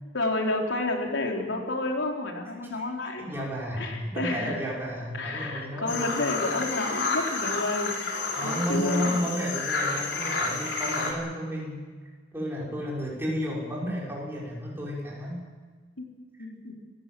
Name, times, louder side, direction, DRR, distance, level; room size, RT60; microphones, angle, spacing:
voice 1, 0.1-3.4 3.8-4.6 5.1-8.0 8.4-9.1 16.0-16.1 16.4-16.8, left 2 dB, 85° left, 1 dB, 4.1 m, -30 dB
voice 2, 3.2-6.3 8.4-11.8 12.3-15.4, equal, 10° right, -5 dB, 6.1 m, -32 dB
sound 1, 5.9-11.1, left 3 dB, 70° left, 4.2 m, -30 dB
27.0 x 16.0 x 7.9 m, 1.5 s
head